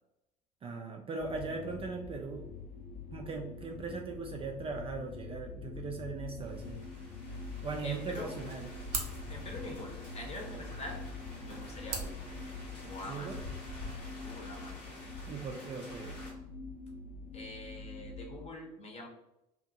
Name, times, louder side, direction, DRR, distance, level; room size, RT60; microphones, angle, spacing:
voice 1, 0.6-2.4 3.1-6.8 7.6-8.7 13.1-13.4 15.3-16.1, right 4 dB, 25° right, 2 dB, 0.4 m, -39 dB
sound 1, 1.2-18.5, left 3 dB, 70° left, 0.7 m, -45 dB
sound 2, 6.4-16.3, left 2 dB, 90° left, 1.1 m, -49 dB
voice 2, 7.8-8.4 9.3-11.1 11.4-12.3 12.9-13.5 14.2-14.9 17.3-19.1, left 2 dB, 30° left, 1 dB, 0.8 m, -45 dB
sound 3, 8.1-13.1, right 5 dB, 65° right, 0.6 m, -44 dB
2.5 x 2.4 x 2.6 m, 0.86 s
hypercardioid pair, 65°, 21 cm